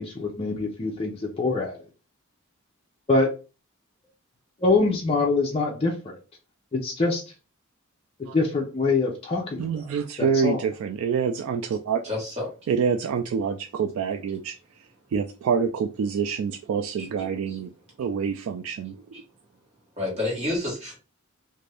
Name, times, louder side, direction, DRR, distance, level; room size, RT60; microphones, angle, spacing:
voice 1, 0.0-1.8 3.1-3.3 4.6-5.9 6.7-7.2 8.3-9.9 10.2-10.6, left 3 dB, 30° left, -1 dB, 0.5 m, -24 dB
voice 2, 9.6-12.0 12.7-14.6 15.1-17.7 18.0-19.0, right 6 dB, 80° right, 5 dB, 0.3 m, -26 dB
voice 3, 12.0-12.5 17.0-17.1 17.5-17.6 19.1-19.2 20.0-21.0, left 2 dB, 30° right, -5 dB, 1.4 m, -29 dB
2.6 x 2.5 x 3.3 m, 0.32 s
head